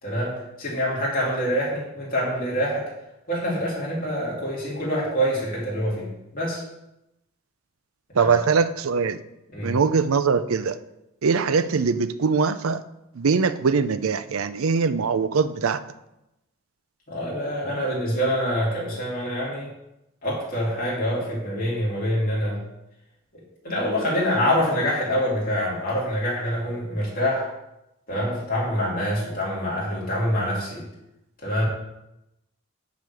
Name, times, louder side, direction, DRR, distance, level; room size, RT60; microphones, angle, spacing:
voice 1, 0.0-2.8 3.3-6.6 8.2-8.3 9.5-9.8 17.1-19.7 20.2-22.6 23.6-27.5 28.1-30.8 31.4-31.7, equal, 40° left, -5 dB, 3.0 m, -25 dB
voice 2, 8.2-9.2 9.6-10.8 11.2-12.8 13.2-15.8, right 5 dB, 75° right, 13 dB, 0.5 m, -22 dB
6.5 x 5.1 x 7.0 m, 0.89 s
head